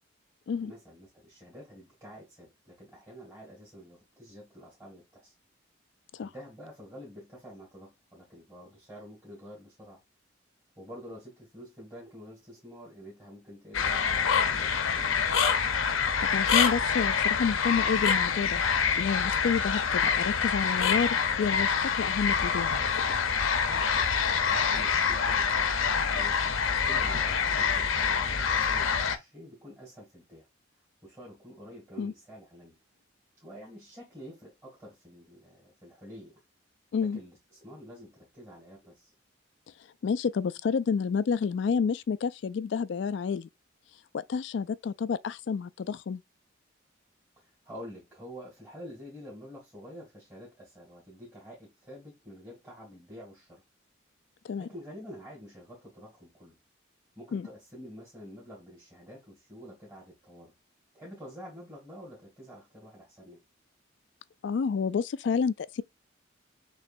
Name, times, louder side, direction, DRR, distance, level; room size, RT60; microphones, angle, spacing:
voice 1, 0.6-5.3 6.2-10.0 10.8-15.2 23.7-26.4 26.8-30.5 31.0-32.8 33.4-36.3 37.0-39.1 47.4-53.6 54.6-56.6 57.2-60.5 60.9-63.4, equal, 15° right, 2.1 m, -48 dB
sound 1, 13.7-29.2, left 6 dB, 85° left, 0.7 m, -26 dB
voice 2, 16.2-18.6 18.9-22.8 32.0-32.1 36.9-37.2 40.0-43.5 44.1-46.2 54.4-54.7 57.3-57.5 64.4-65.8, left 6 dB, 65° left, 0.3 m, -29 dB
6.5 x 3.1 x 2.6 m
head